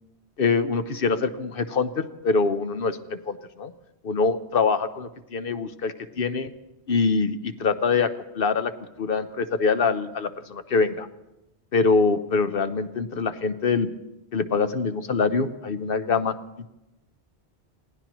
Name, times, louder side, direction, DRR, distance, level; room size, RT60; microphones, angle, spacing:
voice 1, 0.4-3.7 4.0-6.5 6.9-8.1 8.3-8.7 9.0-11.1 11.7-13.9 14.3-16.3, left 4 dB, 55° left, 10 dB, 0.9 m, -24 dB
26.5 x 17.5 x 3.0 m, 0.91 s
omnidirectional pair, 1.2 m